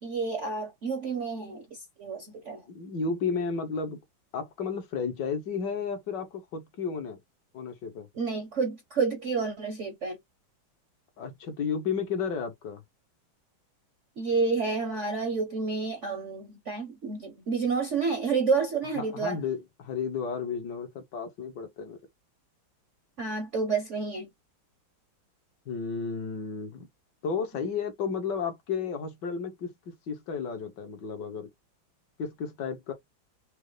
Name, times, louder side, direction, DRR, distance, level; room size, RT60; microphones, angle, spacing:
voice 1, 0.0-2.6 8.1-10.2 14.2-19.4 23.2-24.3, right 4 dB, 55° right, 0.9 m, -29 dB
voice 2, 2.7-4.0 4.3-7.2 7.5-8.1 11.2-12.8 19.0-22.0 25.6-26.9 27.2-31.5 32.2-32.9, left 5 dB, 65° left, 1.7 m, -33 dB
5.3 x 2.0 x 3.2 m
omnidirectional pair, 2.2 m